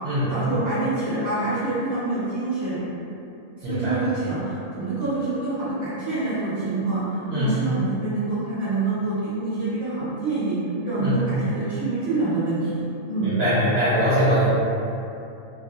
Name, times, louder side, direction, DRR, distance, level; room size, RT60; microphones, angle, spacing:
voice 1, 0.3-2.8 3.6-10.6 10.8-13.3, right 2 dB, 15° right, -14 dB, 1.0 m, -26 dB
voice 2, 3.6-4.0 7.3-7.6 11.0-11.2 13.2-14.5, equal, 65° right, -11 dB, 0.6 m, -22 dB
2.9 x 2.4 x 2.3 m, 2.8 s
omnidirectional pair, 1.7 m